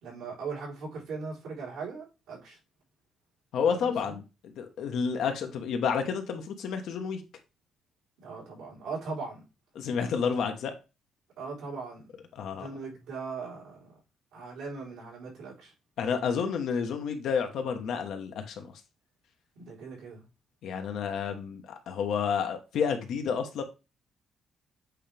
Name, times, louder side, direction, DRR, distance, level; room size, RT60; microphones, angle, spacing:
voice 1, 0.0-2.6 3.7-4.2 8.2-9.4 11.4-12.1 12.5-13.9 14.3-15.7 19.6-20.3, right 4 dB, 90° right, 3.9 m, -39 dB
voice 2, 3.5-7.2 9.7-10.7 12.3-12.7 16.0-18.8 20.6-23.6, left 6 dB, 75° left, 1.3 m, -30 dB
8.3 x 3.4 x 3.4 m
cardioid pair, 90°, 0 cm